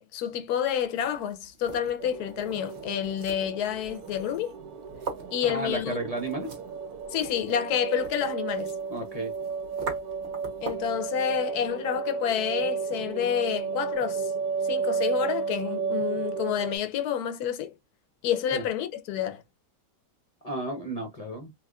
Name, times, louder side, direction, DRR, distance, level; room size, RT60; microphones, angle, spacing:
voice 1, 0.0-4.5 5.3-6.0 7.1-8.7 10.6-14.3 14.6-17.7 18.2-19.4, left 9 dB, 75° left, 1.1 m, -29 dB
sound 1, 0.8-11.0, right 4 dB, 45° right, 1.1 m, -43 dB
sound 2, 2.0-16.8, right 5 dB, 70° right, 1.2 m, -33 dB
voice 2, 5.5-6.6 8.9-9.3 18.5-18.6 20.4-21.5, right 1 dB, 40° left, 0.5 m, -33 dB
3.5 x 2.8 x 2.3 m
omnidirectional pair, 1.8 m